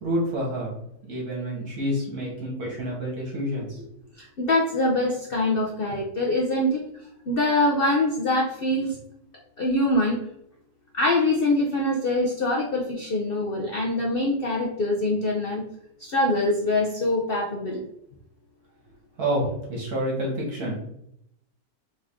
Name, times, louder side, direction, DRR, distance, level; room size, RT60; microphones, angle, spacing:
voice 1, 0.0-0.7 1.1-3.9 19.2-20.8, equal, 60° right, -3 dB, 1.8 m, -28 dB
voice 2, 4.2-6.8 7.3-9.0 9.6-10.2 10.9-15.7 16.0-17.8, left 1 dB, 80° left, -1 dB, 0.5 m, -24 dB
3.8 x 3.6 x 3.5 m, 0.75 s
omnidirectional pair, 1.9 m